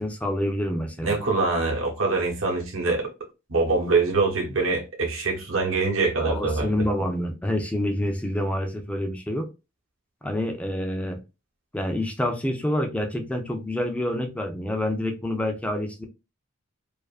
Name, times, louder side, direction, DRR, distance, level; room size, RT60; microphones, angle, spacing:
voice 1, 0.0-1.2 6.2-9.5 10.2-11.2 11.7-16.1, left 1 dB, 5° left, 0.4 m, -27 dB
voice 2, 1.0-3.1 3.5-6.8, right 3 dB, 70° right, 0.8 m, -24 dB
2.5 x 2.4 x 2.3 m
head